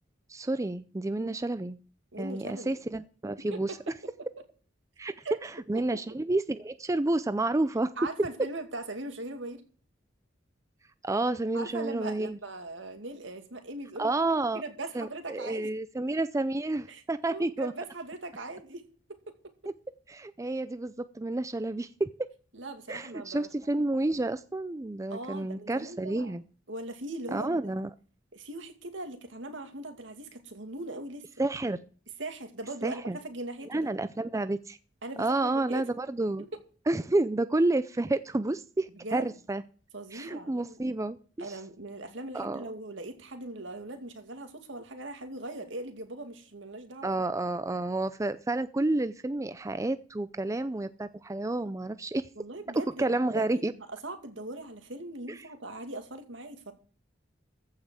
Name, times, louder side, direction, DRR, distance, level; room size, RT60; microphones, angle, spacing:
voice 1, 0.3-1.8 2.2-3.8 5.0-5.1 5.4-7.9 11.0-12.4 14.0-14.6 14.9-17.7 20.1-22.1 22.9-26.4 27.3-27.9 31.4-31.8 32.8-33.2 33.7-34.8 35.2-36.4 36.9-39.6 40.1-41.6 42.3-42.7 47.0-52.3 53.0-53.7 55.3-55.4, right 2 dB, 15° right, 0.5 m, -30 dB
voice 2, 2.1-2.8 3.5-4.1 5.2-5.4 5.7-6.0 8.0-9.6 11.5-15.7 16.9-18.8 19.1-19.3 22.5-23.5 25.1-26.3 26.7-27.6 28.3-31.5 32.2-33.9 35.0-35.9 36.5-36.6 39.0-39.3 39.9-40.8 41.4-47.1 50.5-50.7 52.4-56.7, right 2 dB, 70° right, 2.4 m, -40 dB
14.5 x 5.7 x 7.6 m
head